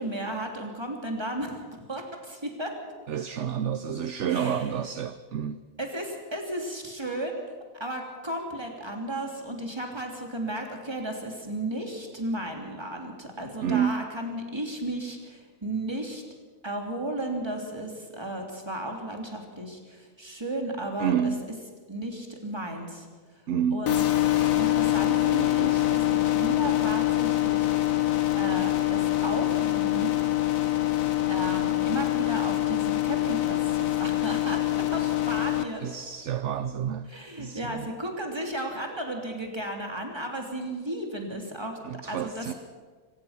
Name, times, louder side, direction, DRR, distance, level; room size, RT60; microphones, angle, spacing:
voice 1, 0.0-1.5 1.9-2.7 4.3-4.8 5.8-7.5 7.8-16.2 16.6-21.3 21.9-23.1 23.7-24.0 24.5-27.7 28.3-30.2 31.3-35.9 37.1-42.5, right 1 dB, 20° right, 3.3 m, -34 dB
voice 2, 3.1-5.6 13.6-14.0 21.0-21.5 23.5-23.9 35.8-37.1 37.4-37.9 41.8-42.5, right 8 dB, 60° right, 1.0 m, -29 dB
sound 1, 23.9-35.6, left 15 dB, 75° left, 1.5 m, -25 dB
24.5 x 18.0 x 5.9 m
omnidirectional pair, 1.5 m